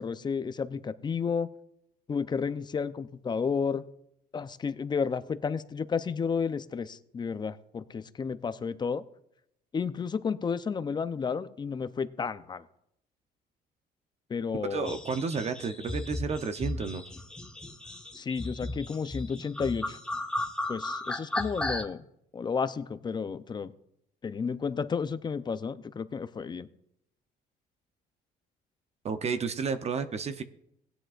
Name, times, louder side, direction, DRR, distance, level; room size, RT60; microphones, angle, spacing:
voice 1, 0.0-1.5 2.1-3.8 4.3-9.0 9.7-12.7 14.3-15.0 18.1-20.0 20.7-22.0 22.3-23.7 24.2-26.7, left 5 dB, 25° left, 12 dB, 0.5 m, -32 dB
voice 2, 14.7-17.0 29.0-30.4, right 5 dB, 40° right, 9 dB, 0.7 m, -31 dB
sound 1, 14.8-21.8, left 1 dB, 5° left, 0.9 m, -35 dB
16.5 x 10.0 x 2.4 m, 0.77 s
cardioid pair, 110°, 17 cm